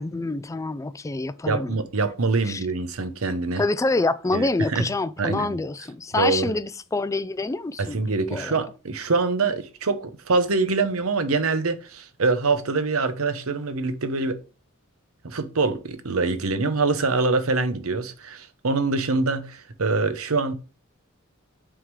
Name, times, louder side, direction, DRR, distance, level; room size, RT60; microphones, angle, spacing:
voice 1, 0.0-1.8 2.5-2.6 3.6-8.0 8.3-8.6, left 3 dB, 15° left, 0.3 m, -26 dB
voice 2, 1.5-3.6 4.3-4.9 5.2-5.6 6.1-6.5 7.8-14.4 15.2-20.5, right 3 dB, 75° right, 0.9 m, -24 dB
6.4 x 3.6 x 4.7 m
head